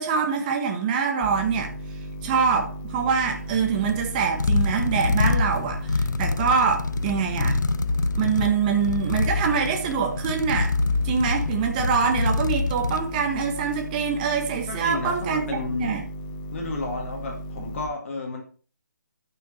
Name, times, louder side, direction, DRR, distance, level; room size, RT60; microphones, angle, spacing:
voice 1, 0.0-1.7 2.2-7.6 8.2-10.7 11.0-15.4 15.8-16.0, right 6 dB, 25° right, 1.4 m, -24 dB
sound 1, 1.2-17.9, right 1 dB, 15° left, 1.3 m, -36 dB
sound 2, 3.1-13.7, left 3 dB, 80° left, 0.7 m, -26 dB
voice 2, 14.7-15.9 16.5-18.4, left 3 dB, 45° left, 2.1 m, -31 dB
12.0 x 6.2 x 4.2 m
figure-of-eight pair, 150°, 10 cm